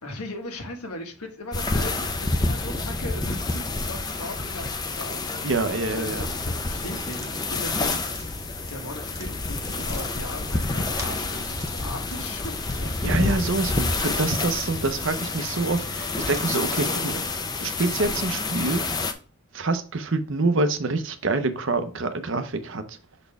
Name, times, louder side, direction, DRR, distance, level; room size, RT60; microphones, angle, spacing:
voice 1, 0.0-5.5 5.9-8.0 8.7-12.5 12.8-12.9, left 2 dB, 90° left, 1.5 m, -38 dB
sound 1, 1.5-19.1, left 3 dB, 20° left, 0.5 m, -28 dB
voice 2, 5.4-6.3 13.0-17.2 17.6-18.8 19.5-23.0, right 3 dB, 55° right, 0.7 m, -26 dB
sound 2, 7.1-16.7, right 1 dB, 15° right, 0.9 m, -45 dB
6.6 x 4.1 x 3.5 m
head